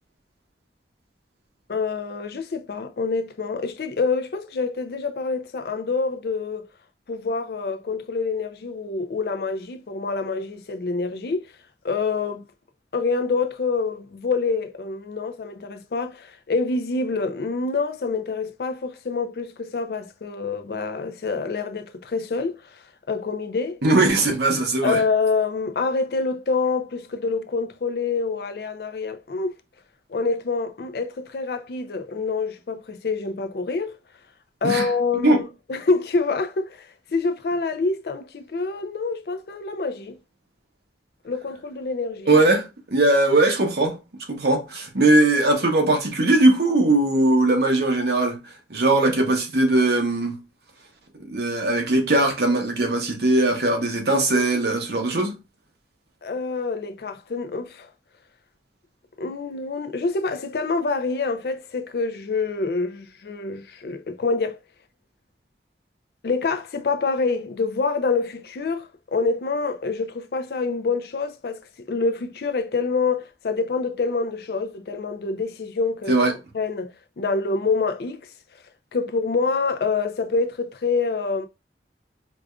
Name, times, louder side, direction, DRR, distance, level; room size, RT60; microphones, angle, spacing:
voice 1, 1.7-6.6 7.1-11.4 11.8-12.4 12.9-22.6 23.1-23.8 24.8-29.5 30.1-33.9 34.6-40.2 41.2-42.3 56.2-57.9 59.2-64.6 66.2-71.6 71.9-76.2 76.5-78.2 78.9-81.4, left 4 dB, 60° left, 0.4 m, -26 dB
voice 2, 23.8-25.0 34.6-34.9 35.2-35.4 42.3-44.0 44.3-48.4 48.7-50.3 51.3-55.3 76.1-76.3, right 2 dB, 65° right, 0.9 m, -20 dB
4.7 x 2.4 x 2.3 m
head